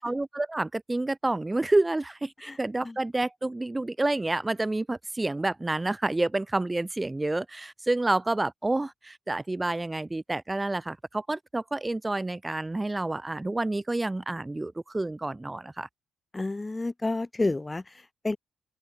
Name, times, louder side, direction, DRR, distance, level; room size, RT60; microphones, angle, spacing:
voice 1, 0.0-15.9, right 2 dB, 15° right, 3.6 m, -29 dB
voice 2, 16.3-18.4, left 2 dB, 20° left, 4.6 m, -30 dB
open air
cardioid pair, 90°, 0 cm